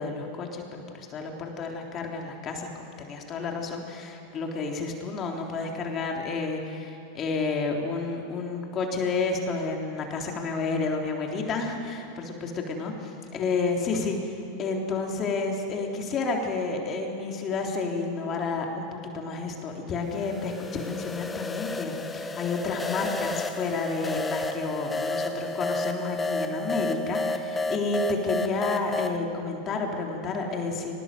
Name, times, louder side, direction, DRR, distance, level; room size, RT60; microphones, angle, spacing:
voice 1, 0.0-2.7 3.0-12.9 13.3-30.9, left 4 dB, 35° left, 1 dB, 3.6 m, -30 dB
sound 1, 20.1-29.2, left 2 dB, 15° left, 1.4 m, -31 dB
23.0 x 20.5 x 7.7 m, 2.8 s
hypercardioid pair, 95°, 0 cm